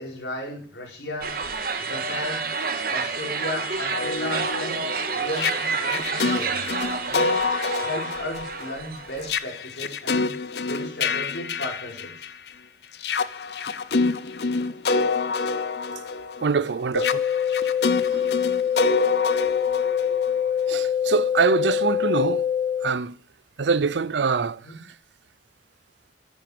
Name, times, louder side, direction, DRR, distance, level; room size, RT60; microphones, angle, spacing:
voice 1, 0.0-1.3 1.8-2.5 2.9-4.8 5.1-6.7 7.1-10.3 10.6-12.3 24.6-24.8, left 1 dB, 85° left, 5.2 m, -35 dB
sound 1, 1.2-9.4, right 4 dB, 55° right, 1.7 m, -29 dB
sound 2, 3.6-12.5 12.9-20.7, left 4 dB, 70° left, 0.7 m, -27 dB
voice 2, 16.4-17.2 18.1-18.3 20.7-22.5 22.8-23.2 23.6-24.6, right 5 dB, 90° right, 0.6 m, -24 dB
sound 3, 16.9-22.9, left 8 dB, 50° left, 1.2 m, -24 dB
10.5 x 8.9 x 5.2 m
head